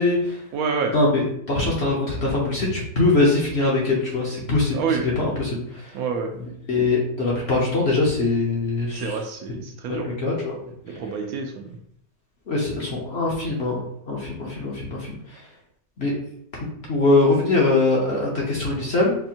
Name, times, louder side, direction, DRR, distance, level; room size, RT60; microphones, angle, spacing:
voice 1, 0.0-0.4 0.9-6.0 6.3-9.2 10.0-10.6 10.9-11.0 12.5-15.5 16.0-16.1 16.9-19.1, left 2 dB, 50° left, -3 dB, 0.8 m, -22 dB
voice 2, 0.5-0.9 4.7-5.0 5.9-6.3 8.9-10.1 10.8-11.8, right 5 dB, 75° right, 3 dB, 1.0 m, -27 dB
4.3 x 2.4 x 2.8 m, 0.70 s
omnidirectional pair, 1.7 m